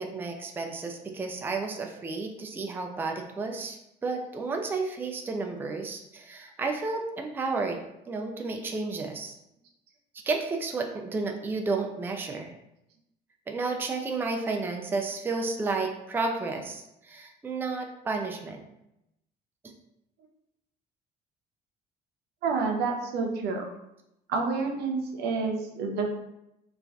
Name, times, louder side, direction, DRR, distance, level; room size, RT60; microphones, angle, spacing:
voice 1, 0.0-7.8 8.1-9.3 10.2-12.5 13.5-18.6, right 3 dB, 10° right, 3 dB, 0.3 m, -32 dB
voice 2, 22.4-23.6 24.3-26.1, right 4 dB, 80° right, 2 dB, 0.6 m, -28 dB
3.2 x 2.4 x 2.2 m, 0.84 s
cardioid pair, 110°, 17 cm